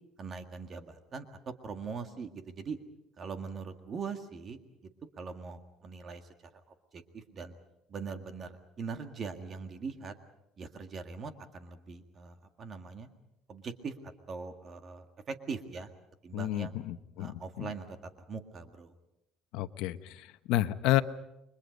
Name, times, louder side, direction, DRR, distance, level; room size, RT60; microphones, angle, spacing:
voice 1, 0.2-2.8 3.2-4.6 5.2-6.2 6.9-7.5 7.9-10.1 10.6-13.1 13.5-13.9 14.3-15.9 16.2-16.8 17.2-17.9 18.3-18.9, right 5 dB, 35° right, 7 dB, 1.9 m, -41 dB
voice 2, 16.3-17.7 19.5-21.0, left 15 dB, 80° left, 11 dB, 1.0 m, -31 dB
30.0 x 23.5 x 5.3 m, 0.86 s
cardioid pair, 150°, 0 cm